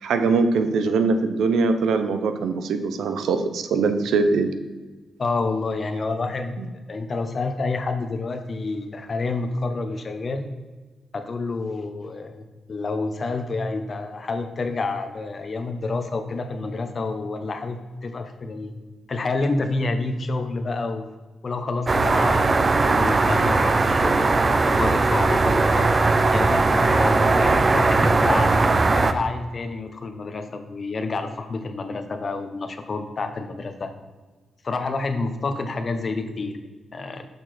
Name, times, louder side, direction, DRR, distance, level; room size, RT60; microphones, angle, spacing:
voice 1, 0.0-4.5 6.6-6.7, right 4 dB, 80° right, 8 dB, 0.6 m, -22 dB
voice 2, 5.2-6.6 6.9-10.4 11.1-18.8 19.1-21.1 21.4-25.9 26.3-28.5 28.9-33.9 34.6-36.6 36.9-37.3, left 3 dB, 50° left, 7 dB, 1.0 m, -28 dB
sound 1, 21.9-29.1, right 3 dB, 40° right, 0.5 m, -19 dB
6.8 x 5.9 x 4.2 m, 1.3 s
supercardioid pair, 50°, 0 cm